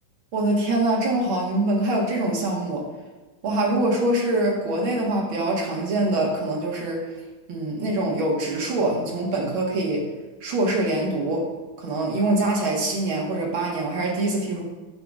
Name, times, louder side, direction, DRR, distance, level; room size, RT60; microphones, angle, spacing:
voice 1, 0.3-2.9 3.4-7.1 7.5-10.1 10.4-11.5 11.8-14.6, right 2 dB, 75° right, -1 dB, 2.3 m, -24 dB
9.4 x 7.5 x 2.4 m, 1.2 s
omnidirectional pair, 2.2 m